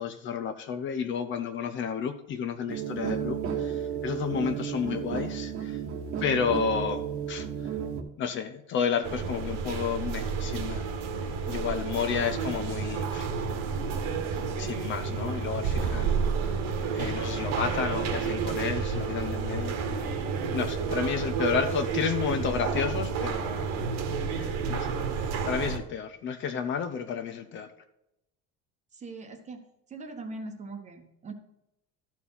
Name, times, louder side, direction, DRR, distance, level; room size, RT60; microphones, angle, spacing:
voice 1, 0.0-5.8 6.2-7.5 8.2-10.8 11.5-13.3 14.6-16.6 16.9-20.2 20.5-23.7 24.4-24.9 25.4-27.7, left 7 dB, 40° left, 0.7 m, -31 dB
sound 1, 2.7-8.0, right 8 dB, 45° right, 1.2 m, -33 dB
sound 2, 9.0-25.8, right 5 dB, 60° right, 1.5 m, -30 dB
voice 2, 28.9-29.6 29.9-31.3, right 3 dB, 20° right, 1.1 m, -41 dB
12.5 x 4.5 x 5.6 m
cardioid pair, 165°, 31 cm